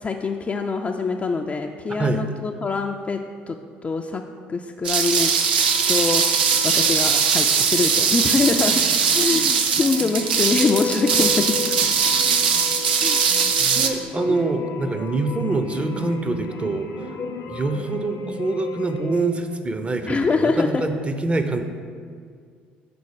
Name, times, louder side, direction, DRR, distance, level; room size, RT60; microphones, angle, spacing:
voice 1, 0.0-3.2 3.5-3.6 3.8-4.2 4.5-5.3 5.9-6.2 6.6-8.8 9.1-11.6 13.0-13.3 20.0-20.7, left 4 dB, 25° left, 3 dB, 0.4 m, -24 dB
sound 1, 4.8-13.9, right 6 dB, 85° right, 0.4 m, -20 dB
sound 2, 4.9-19.2, left 6 dB, 65° left, 0.7 m, -36 dB
sound 3, 8.7-18.4, equal, 40° right, 1.0 m, -39 dB
voice 2, 13.7-17.1 17.5-21.6, right 2 dB, 25° right, 7 dB, 0.6 m, -25 dB
6.9 x 3.9 x 4.8 m, 2.1 s
hypercardioid pair, 55°, 5 cm